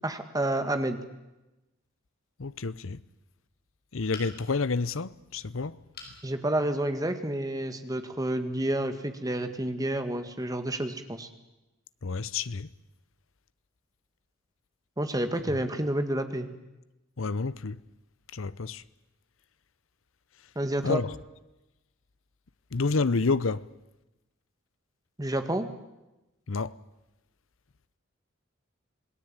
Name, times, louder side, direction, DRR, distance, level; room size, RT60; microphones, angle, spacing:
voice 1, 0.0-1.0 6.2-11.3 15.0-16.5 20.6-21.0 25.2-25.7, right 1 dB, 15° right, 1.9 m, -29 dB
voice 2, 2.4-3.0 3.9-5.8 12.0-12.7 17.2-17.8 18.3-18.8 20.8-21.1 22.7-23.6 26.5-26.8, left 4 dB, 70° left, 0.8 m, -29 dB
sound 1, 4.1-4.7 5.9-6.2 6.8-6.9 7.2-7.3, left 4 dB, 50° left, 5.4 m, -44 dB
27.0 x 18.5 x 8.9 m
head